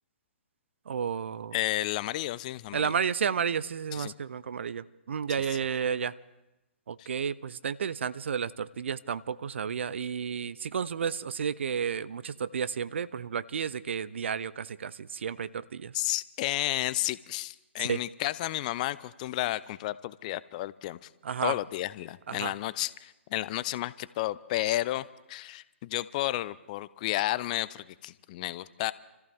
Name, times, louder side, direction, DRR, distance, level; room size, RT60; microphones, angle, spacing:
voice 1, 0.9-1.6 2.7-6.1 6.9-15.9 17.8-18.0 21.2-21.6 22.3-22.5, right 7 dB, 65° right, 17 dB, 0.5 m, -32 dB
voice 2, 1.5-2.9 3.9-4.1 7.0-7.1 15.9-21.1 21.4-28.9, left 16 dB, 35° left, 17 dB, 0.5 m, -32 dB
27.5 x 14.0 x 3.5 m, 0.97 s
figure-of-eight pair, 130°, 7 cm